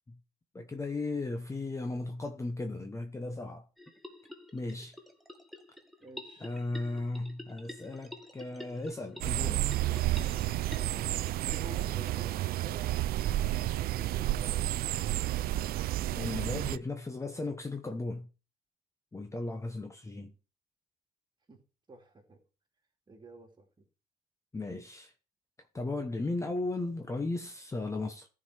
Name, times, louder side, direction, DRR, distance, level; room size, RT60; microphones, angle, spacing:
voice 1, 0.5-3.6 4.5-5.0 6.4-9.6 16.2-18.3 19.1-20.3 24.5-25.1 25.7-28.3, left 2 dB, 15° left, 1.0 m, -36 dB
sound 1, 3.8-12.5, left 1 dB, ahead, 1.4 m, -49 dB
voice 2, 6.0-6.5 10.1-10.4 11.4-12.9 13.4-14.7 21.5-21.6 21.9-22.4 23.1-23.9, right 2 dB, 25° right, 2.7 m, -50 dB
sound 2, 9.2-16.8, right 14 dB, 65° right, 0.4 m, -31 dB
13.5 x 4.9 x 4.6 m
cardioid pair, 110°, 17 cm